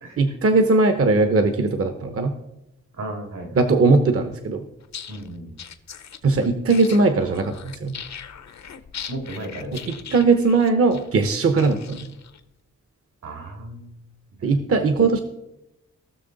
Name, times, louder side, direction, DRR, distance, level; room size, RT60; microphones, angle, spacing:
voice 1, 0.2-2.3 3.5-4.7 6.2-7.9 9.7-12.1 14.4-15.2, right 3 dB, 45° right, 7 dB, 0.8 m, -19 dB
voice 2, 3.0-3.5 5.1-5.5 9.1-9.8 13.2-14.0, right 1 dB, 80° right, 3 dB, 2.5 m, -34 dB
sound 1, 4.8-12.4, left 7 dB, 60° left, 0.7 m, -40 dB
17.5 x 6.5 x 3.9 m, 0.90 s
wide cardioid pair, 150°, 31 cm